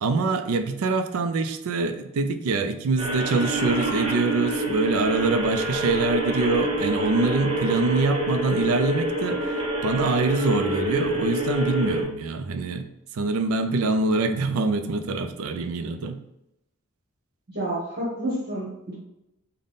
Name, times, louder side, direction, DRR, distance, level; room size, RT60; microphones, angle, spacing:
voice 1, 0.0-12.9 13.1-16.2, right 3 dB, 65° right, 8 dB, 0.4 m, -25 dB
sound 1, 3.0-12.0, equal, 25° right, 0.7 m, -27 dB
voice 2, 17.5-18.9, right 1 dB, 45° right, -6 dB, 1.0 m, -29 dB
3.5 x 2.1 x 3.9 m, 0.87 s
head